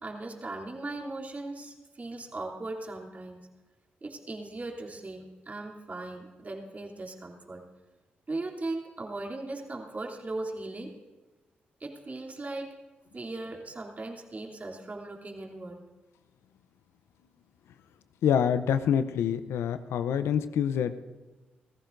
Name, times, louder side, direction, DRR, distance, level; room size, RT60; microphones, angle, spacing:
voice 1, 0.0-3.4 4.0-7.6 8.3-10.9 11.8-12.7 13.1-15.8, right 2 dB, 40° right, 0 dB, 3.0 m, -38 dB
voice 2, 18.2-21.0, left 8 dB, 80° left, 12 dB, 0.6 m, -26 dB
29.0 x 14.5 x 2.6 m, 1.2 s
supercardioid pair, 45°, 4 cm